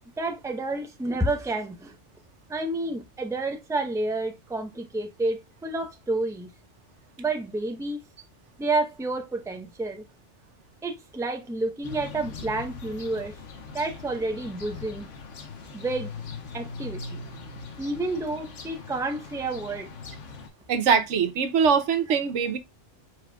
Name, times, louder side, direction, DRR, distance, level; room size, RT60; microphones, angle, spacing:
voice 1, 0.2-1.9 2.5-6.5 7.2-8.0 8.6-10.0 10.8-13.3 13.7-15.1 15.7-16.1 16.5-17.2 17.8-19.9, right 2 dB, 5° right, 0.7 m, -30 dB
sound 1, 11.8-20.5, left 4 dB, 80° left, 1.3 m, -41 dB
voice 2, 20.7-22.6, right 6 dB, 75° right, 1.0 m, -22 dB
4.8 x 4.8 x 2.2 m
omnidirectional pair, 1.2 m